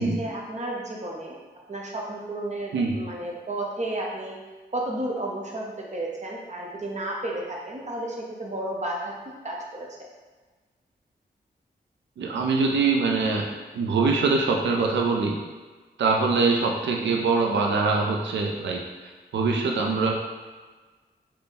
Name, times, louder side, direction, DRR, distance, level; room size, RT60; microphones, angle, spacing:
voice 1, 0.0-1.4 1.7-4.4 4.7-9.1 9.4-9.9 16.6-16.8, right 1 dB, 40° right, -2 dB, 0.9 m, -32 dB
voice 2, 12.2-15.4 16.0-18.8 19.3-20.1, right 4 dB, 80° right, 1 dB, 0.4 m, -23 dB
3.4 x 2.2 x 3.9 m, 1.3 s
cardioid pair, 45°, 18 cm